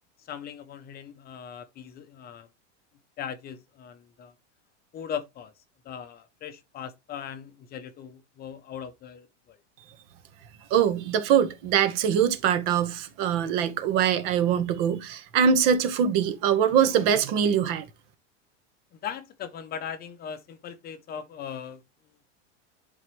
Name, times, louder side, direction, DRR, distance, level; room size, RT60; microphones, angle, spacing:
voice 1, 0.2-2.5 3.2-4.3 4.9-5.5 5.8-9.6 19.0-21.8, left 8 dB, 25° left, 0.7 m, -39 dB
voice 2, 10.7-17.8, right 8 dB, 55° right, 1.3 m, -23 dB
11.0 x 3.9 x 3.1 m
supercardioid pair, 135°, 36 cm